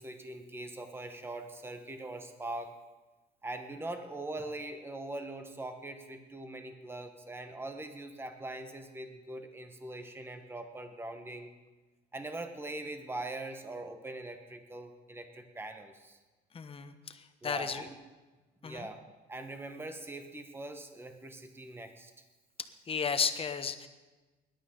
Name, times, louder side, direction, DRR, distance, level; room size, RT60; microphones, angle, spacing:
voice 1, 0.0-2.7 3.4-11.5 12.1-16.2 17.4-17.9 18.6-19.0 19.3-22.1, right 2 dB, 15° right, 7 dB, 1.3 m, -42 dB
voice 2, 16.5-17.9 18.6-18.9 22.9-23.9, left 6 dB, 35° left, 9 dB, 1.0 m, -34 dB
20.5 x 11.5 x 3.9 m, 1.2 s
cardioid pair, 110°, 17 cm